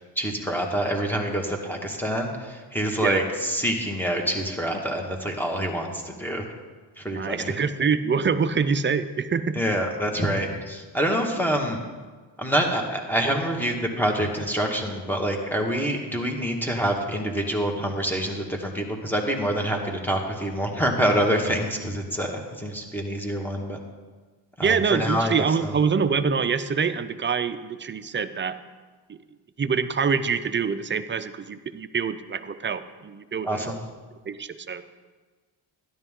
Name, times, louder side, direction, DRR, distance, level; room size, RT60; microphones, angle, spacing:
voice 1, 0.2-2.3 2.7-6.4 7.0-7.5 9.6-11.8 12.4-23.8 24.6-25.3 33.4-33.7, equal, 5° left, 2 dB, 1.7 m, -26 dB
voice 2, 7.2-9.6 24.6-28.6 29.1-29.2 29.6-33.8 34.3-34.8, right 5 dB, 25° right, 10 dB, 0.5 m, -25 dB
12.5 x 11.0 x 3.7 m, 1.4 s
cardioid pair, 100°, 47 cm